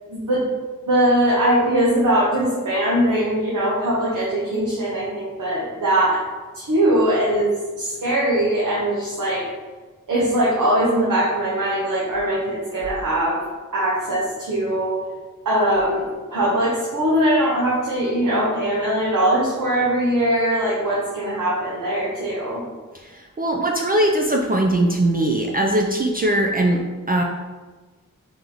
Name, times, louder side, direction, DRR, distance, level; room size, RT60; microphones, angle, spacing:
voice 1, 0.1-0.5 0.9-6.2 6.5-9.5 10.1-13.4 13.7-15.0 15.4-22.6, right 1 dB, 80° right, -6 dB, 0.9 m, -21 dB
voice 2, 23.0-27.2, right 1 dB, 30° right, 0 dB, 0.4 m, -20 dB
3.8 x 2.9 x 3.8 m, 1.3 s
wide cardioid pair, 65°, 31 cm